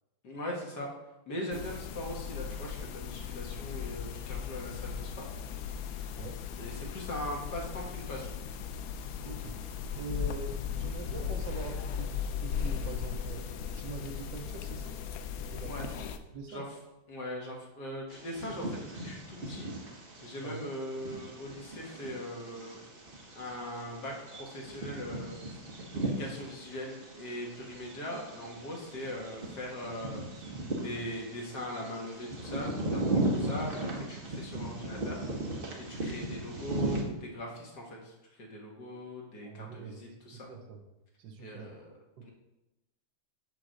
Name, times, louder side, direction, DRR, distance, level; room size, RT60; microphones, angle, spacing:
voice 1, 0.2-0.9 1.3-5.3 6.5-8.3 15.6-15.9 16.5-16.6 17.1-19.7 20.2-22.8 23.4-25.3 25.9-30.4 30.8-35.3 35.8-38.1 38.4-40.4 41.4-41.9 42.2-42.3, left 1 dB, 60° left, -1 dB, 2.0 m, -40 dB
sound 1, 1.5-16.2, left 7 dB, 90° left, 0.7 m, -38 dB
voice 2, 9.2-9.6 9.9-15.0 15.4-16.1 16.3-16.7 20.4-20.7 39.4-40.8 41.2-41.7 42.2-42.3, right 4 dB, 70° right, 4 dB, 1.5 m, -44 dB
sound 2, 11.4-15.4, left 7 dB, 75° left, 1.4 m, -42 dB
Bird vocalization bird call bird song, 18.1-37.0, right 2 dB, 35° right, 1.1 m, -37 dB
7.6 x 3.9 x 6.4 m, 0.97 s
omnidirectional pair, 2.1 m